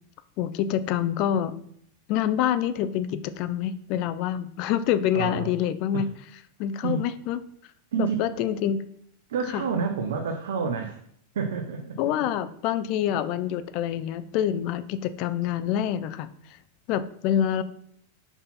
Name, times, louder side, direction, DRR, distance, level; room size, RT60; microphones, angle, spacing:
voice 1, 0.4-1.7 2.1-6.1 6.6-7.4 8.0-8.8 9.5-9.6 12.0-16.3 16.9-17.6, left 10 dB, 45° left, 13 dB, 0.4 m, -26 dB
voice 2, 5.1-5.5 5.9-6.0 6.8-7.1 7.9-8.2 9.3-11.0 11.3-12.0, right 5 dB, 85° right, 3 dB, 0.8 m, -28 dB
5.7 x 4.0 x 4.2 m, 0.66 s
supercardioid pair, 150°, 0 cm